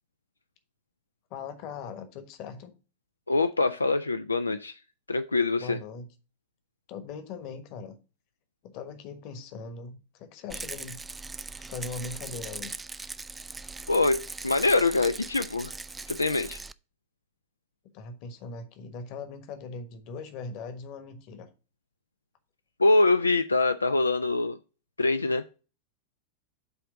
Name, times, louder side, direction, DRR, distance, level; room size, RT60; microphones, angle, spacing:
voice 1, 1.3-2.7 5.6-6.1 6.9-8.0 8.6-11.0 11.6-12.8 17.9-21.5, left 4 dB, 40° left, 9 dB, 1.2 m, -40 dB
voice 2, 3.3-4.8 5.1-5.8 13.9-15.7 16.1-16.6 22.8-24.6 25.0-25.4, left 3 dB, 80° left, 10 dB, 0.3 m, -24 dB
Rattle, 10.5-16.7, right 3 dB, 10° right, 0.3 m, -40 dB
8.1 x 3.3 x 5.1 m, 0.33 s
figure-of-eight pair, 90°, 0 cm